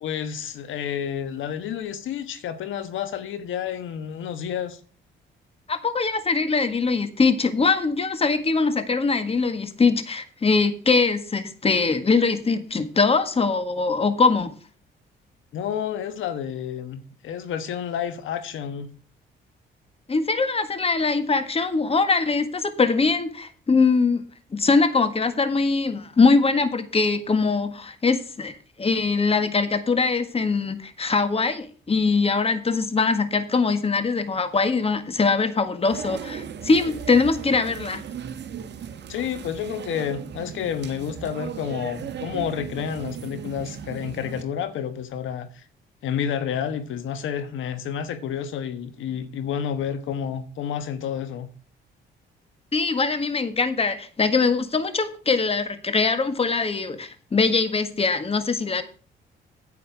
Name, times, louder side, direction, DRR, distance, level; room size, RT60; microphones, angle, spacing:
voice 1, 0.0-4.8 15.5-18.9 39.1-45.6 46.0-51.5, left 8 dB, 80° left, 1.3 m, -30 dB
voice 2, 5.7-14.5 20.1-24.2 24.5-38.0 52.7-58.8, left 4 dB, 30° left, 1.7 m, -22 dB
sound 1, 35.9-44.4, right 8 dB, 60° right, 1.4 m, -37 dB
9.7 x 8.6 x 4.8 m
cardioid pair, 90°, 20 cm